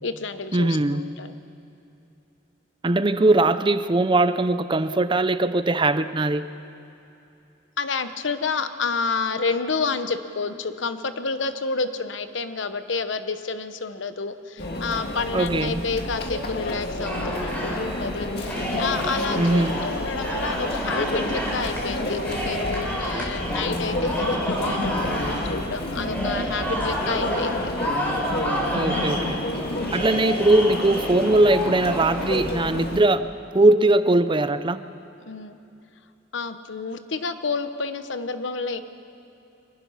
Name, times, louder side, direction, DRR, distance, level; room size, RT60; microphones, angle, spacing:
voice 1, 0.0-1.3 7.8-27.7 35.2-35.6 36.3-38.8, left 4 dB, 70° left, 10 dB, 1.0 m, -29 dB
voice 2, 0.5-1.2 2.8-6.5 15.3-15.8 19.4-19.8 28.7-29.4 29.9-33.3 33.5-34.8, right 2 dB, 25° right, 13 dB, 0.6 m, -20 dB
Conversation / Chatter / Crowd, 14.6-33.0, left 1 dB, 55° left, 1.9 m, -29 dB
sound 1, 17.0-32.4, equal, 10° left, 4.2 m, -30 dB
25.0 x 18.5 x 5.8 m, 2.8 s
head